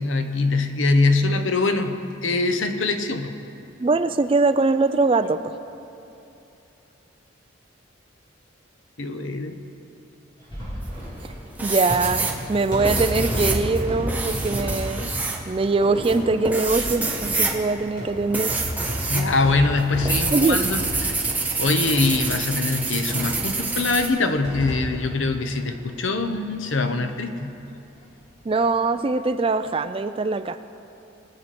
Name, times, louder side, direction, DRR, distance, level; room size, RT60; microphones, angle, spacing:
voice 1, 0.0-2.0 2.2-3.3 9.0-9.5 19.1-21.3 21.6-27.5, left 3 dB, 75° left, 7 dB, 0.9 m, -23 dB
voice 2, 3.8-5.5 11.6-15.1 15.5-18.5 20.3-20.6 28.5-30.6, right 3 dB, 25° right, 10 dB, 0.3 m, -22 dB
sound 1, 10.4-26.4 26.7-26.8 27.0-27.1 28.4-28.6, equal, 20° left, 3.7 m, -32 dB
sound 2, 10.8-11.3 11.6-19.3 19.6-24.1, right 3 dB, 10° right, 0.9 m, -27 dB
23.0 x 7.7 x 4.3 m, 2.9 s
head